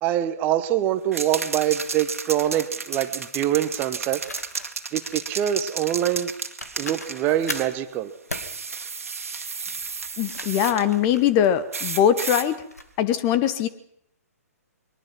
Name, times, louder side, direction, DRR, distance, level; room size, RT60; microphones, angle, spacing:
voice 1, 0.0-4.2 4.9-6.3 6.8-8.1, right 11 dB, 20° right, 11 dB, 1.1 m, -24 dB
sound 1, 1.1-7.7 8.3-10.8 11.7-12.5, right 5 dB, 65° right, 2.0 m, -33 dB
sound 2, 1.8-2.0 4.2-5.2 6.2-6.3 6.6-7.8 8.3-8.5 10.1-11.9 12.5-12.9, left 2 dB, 75° left, 2.3 m, -38 dB
voice 2, 10.2-12.6 13.0-13.7, left 9 dB, 25° left, 13 dB, 1.1 m, -21 dB
22.5 x 19.5 x 6.0 m, 0.68 s
figure-of-eight pair, 125°, 8 cm